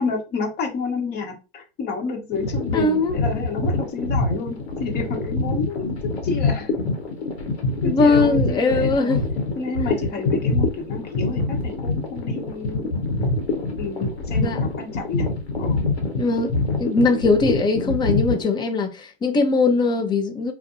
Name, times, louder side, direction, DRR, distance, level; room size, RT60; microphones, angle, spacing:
voice 1, 0.0-6.7 7.8-9.2 9.6-12.9 13.8-15.3 15.6-15.8, left 4 dB, 30° left, 1.0 m, -30 dB
sound 1, 2.3-18.4, left 3 dB, 80° left, 0.9 m, -25 dB
voice 2, 2.7-3.3 7.8-9.2 14.3-14.6 16.2-16.5 16.8-20.5, left 3 dB, 15° left, 0.5 m, -20 dB
2.5 x 2.1 x 2.5 m
hypercardioid pair, 95°, 31 cm